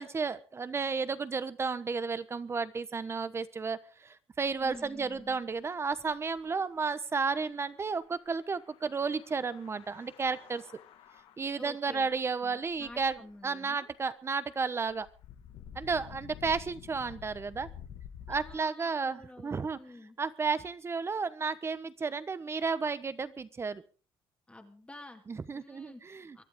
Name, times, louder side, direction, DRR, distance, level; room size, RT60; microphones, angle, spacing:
voice 1, 0.0-10.6 11.4-13.2 13.4-15.1 15.7-17.7 18.3-19.8 20.2-23.8 25.3-26.4, right 4 dB, 25° right, 14 dB, 1.0 m, -33 dB
sound 1, 4.4-6.5 7.3-13.3 14.9-18.6, left 9 dB, 75° left, 1.8 m, -51 dB
voice 2, 4.6-5.4 11.6-12.1 12.4-13.9 18.3-20.2 24.5-25.2 25.5-26.0 26.3-26.4, left 2 dB, 10° left, 4 dB, 2.2 m, -50 dB
23.5 x 11.5 x 3.7 m, 0.38 s
cardioid pair, 120°, 9 cm